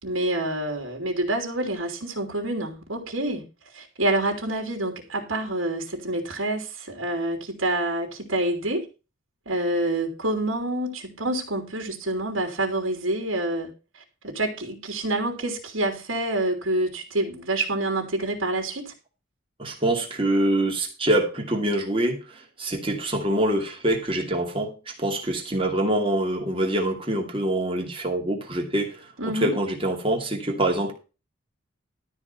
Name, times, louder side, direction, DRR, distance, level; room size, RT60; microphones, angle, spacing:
voice 1, 0.0-3.4 3.7-8.9 9.4-13.7 14.2-18.9 29.2-29.6, right 1 dB, 90° right, 3.2 m, -27 dB
voice 2, 19.6-30.9, right 1 dB, 25° right, 2.6 m, -25 dB
13.0 x 5.0 x 6.8 m
head